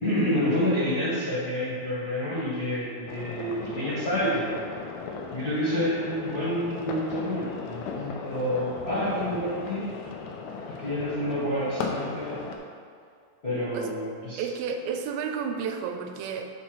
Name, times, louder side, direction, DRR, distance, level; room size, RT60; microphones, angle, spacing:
voice 1, 0.0-4.6 5.3-9.8 10.7-12.4 13.4-14.5, equal, 45° left, -11 dB, 1.3 m, -28 dB
sound 1, 3.1-12.6, left 4 dB, 85° left, 1.6 m, -37 dB
voice 2, 14.4-16.5, right 6 dB, 85° right, 5 dB, 2.3 m, -31 dB
6.0 x 4.2 x 6.1 m, 2.2 s
omnidirectional pair, 4.2 m